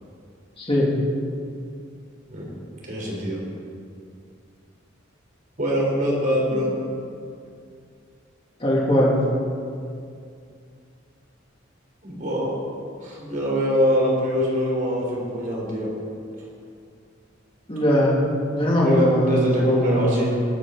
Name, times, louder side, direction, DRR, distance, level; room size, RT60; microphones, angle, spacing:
voice 1, 0.6-0.9 6.5-6.6 8.6-9.2 17.7-18.2 18.5-20.4, equal, 30° left, -5 dB, 2.7 m, -20 dB
voice 2, 2.8-3.4 5.6-6.7 12.0-12.5 13.0-15.9 18.8-20.3, equal, 40° right, -3 dB, 3.8 m, -24 dB
21.0 x 9.5 x 3.9 m, 2.3 s
head